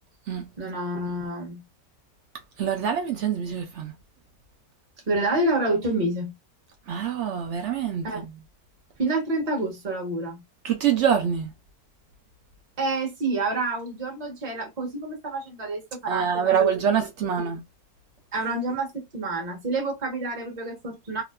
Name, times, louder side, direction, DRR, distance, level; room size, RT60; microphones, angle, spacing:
voice 1, 0.6-1.6 5.1-6.3 8.0-8.3 9.0-10.4 12.8-16.7 18.3-21.2, right 2 dB, 30° right, 1.0 m, -28 dB
voice 2, 2.6-3.9 6.9-8.3 10.6-11.5 16.1-17.6, right 8 dB, 70° right, 0.7 m, -25 dB
2.8 x 2.4 x 2.2 m
omnidirectional pair, 1.7 m